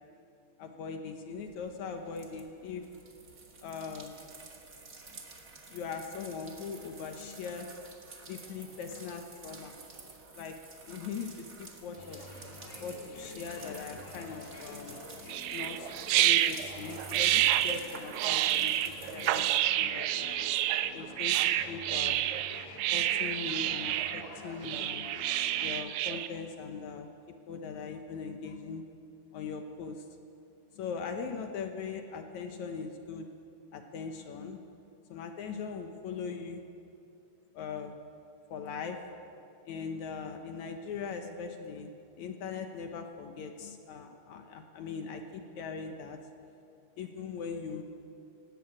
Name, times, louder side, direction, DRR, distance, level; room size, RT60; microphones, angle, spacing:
voice 1, 0.6-2.9 3.6-4.2 5.1-5.2 5.7-7.7 8.3-9.7 10.4-10.6 10.8-11.3 11.6-12.2 12.8-15.0 15.5-19.5 19.8-20.4 20.9-22.3 22.9-25.1 25.6-27.1 27.5-28.8 29.3-30.1 30.8-33.3 33.7-34.6 35.1-36.6 37.5-38.0 38.5-39.0 39.7-41.9 42.2-46.2 47.0-47.8, left 5 dB, 70° left, 5 dB, 1.7 m, -40 dB
sound 1, 1.4-19.4, right 3 dB, 40° right, 1.2 m, -50 dB
sound 2, 12.0-25.7, left 3 dB, 50° left, 2.7 m, -48 dB
sound 3, 15.3-26.3, right 13 dB, 85° right, 2.7 m, -29 dB
18.5 x 16.5 x 8.7 m, 2.6 s
omnidirectional pair, 4.7 m